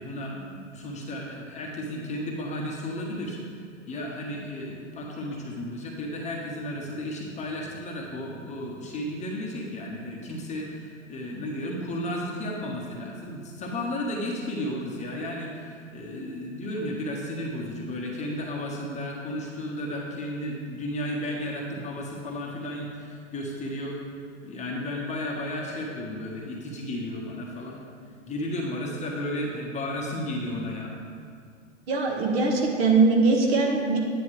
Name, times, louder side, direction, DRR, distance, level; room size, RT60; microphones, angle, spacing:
voice 1, 0.0-3.4 3.9-24.0 24.4-27.8 28.3-30.9, left 1 dB, 20° left, -2 dB, 1.2 m, -33 dB
voice 2, 31.9-34.0, right 3 dB, 50° right, 0 dB, 1.8 m, -21 dB
9.7 x 9.5 x 3.3 m, 2.2 s
hypercardioid pair, 115°, 39 cm